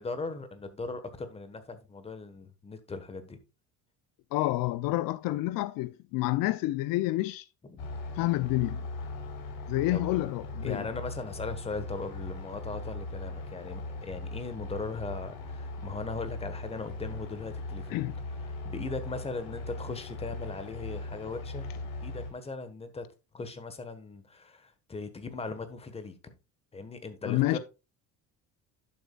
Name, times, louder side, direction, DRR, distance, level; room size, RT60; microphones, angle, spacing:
voice 1, 0.0-3.4 7.7-7.8 9.9-10.1 10.6-18.1 18.6-21.7 22.0-23.1 23.3-26.3 26.7-27.6, left 3 dB, 15° left, 1.3 m, -39 dB
voice 2, 4.3-7.5 8.1-8.8 9.7-10.9 17.9-18.1 27.2-27.6, left 18 dB, 70° left, 0.5 m, -28 dB
sound 1, 7.8-22.3, left 2 dB, 90° left, 4.1 m, -39 dB
11.0 x 7.0 x 2.4 m
cardioid pair, 145°, 36 cm